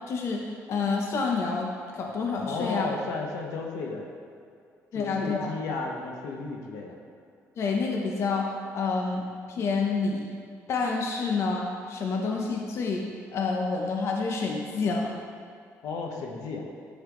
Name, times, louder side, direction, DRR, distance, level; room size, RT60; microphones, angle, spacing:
voice 1, 0.1-0.4 0.7-2.8 4.9-5.5 7.6-8.5 8.7-10.3 10.7-13.0 13.3-15.1, left 4 dB, 55° left, 0 dB, 0.9 m, -28 dB
voice 2, 2.4-4.1 4.9-7.0 15.8-16.7, left 3 dB, 85° left, 1 dB, 1.1 m, -34 dB
10.0 x 5.7 x 3.8 m, 2.4 s
cardioid pair, 125°, 6 cm